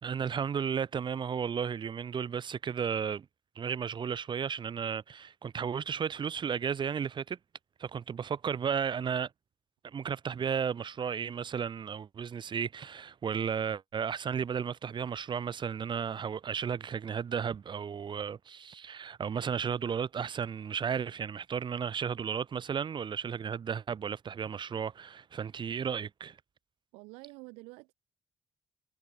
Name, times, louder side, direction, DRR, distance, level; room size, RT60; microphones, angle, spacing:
voice 1, 0.0-3.2 3.5-7.4 7.8-9.3 9.8-26.4, right 7 dB, 50° right, 3.4 m, -34 dB
voice 2, 26.9-27.9, right 28 dB, 75° right, 2.6 m, -48 dB
hypercardioid pair, 45°, 11 cm